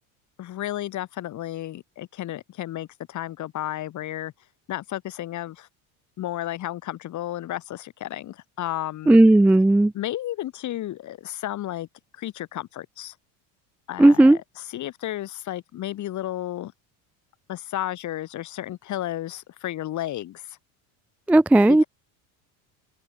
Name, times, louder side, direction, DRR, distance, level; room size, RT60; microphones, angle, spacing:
voice 1, 0.4-4.3 4.7-5.7 6.2-9.2 9.9-11.9 12.1-13.1 13.9-16.7 17.5-20.6 21.7-21.9, left 13 dB, 45° left, 5.0 m, -32 dB
voice 2, 9.1-9.9 14.0-14.4 21.3-21.8, right 2 dB, 5° right, 0.4 m, -14 dB
open air
cardioid pair, 135°, 39 cm